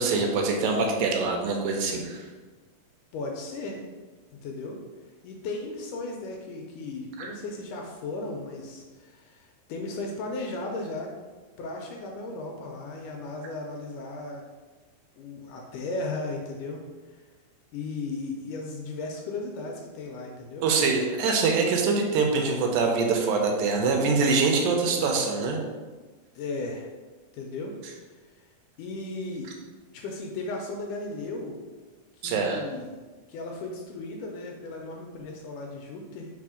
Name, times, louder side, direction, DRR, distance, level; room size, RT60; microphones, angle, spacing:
voice 1, 0.0-2.2 7.2-7.3 20.6-25.6 32.2-32.6, right 4 dB, 80° right, 2 dB, 2.4 m, -24 dB
voice 2, 3.1-3.8 4.3-4.8 5.2-11.1 11.6-14.5 15.2-16.8 17.7-20.7 26.4-26.9 27.3-27.8 28.8-29.5 29.9-31.6 32.2-32.9 33.3-36.3, left 2 dB, 75° left, 1 dB, 2.0 m, -36 dB
4.7 x 4.3 x 4.9 m, 1.4 s
omnidirectional pair, 4.1 m